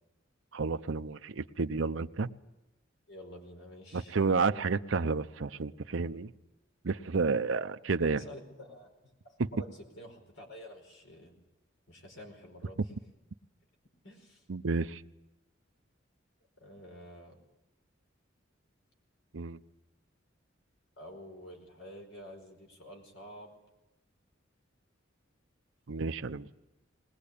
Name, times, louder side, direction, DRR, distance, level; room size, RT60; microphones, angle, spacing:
voice 1, 0.5-2.3 3.9-6.3 6.8-8.2 9.4-9.5 14.5-15.0 19.3-19.6 25.9-26.5, right 4 dB, 80° right, 0.7 m, -31 dB
voice 2, 3.1-4.2 8.0-8.9 9.2-11.3 11.9-12.8 14.0-14.4 16.6-17.4 21.0-23.5, equal, 75° left, 5.0 m, -49 dB
20.5 x 20.0 x 8.6 m
head